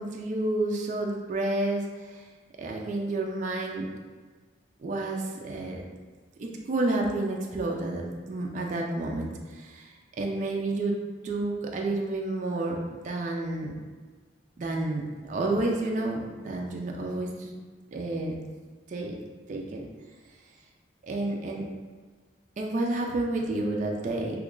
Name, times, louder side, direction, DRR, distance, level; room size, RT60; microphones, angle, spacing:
voice 1, 0.0-2.2 2.6-3.9 4.8-5.8 6.4-10.9 11.2-13.8 14.6-17.5 17.9-18.4 18.9-19.2 19.5-19.9 21.1-21.6 22.6-24.4, right 2 dB, 40° right, 0 dB, 0.3 m, -30 dB
3.0 x 2.3 x 3.6 m, 1.4 s
head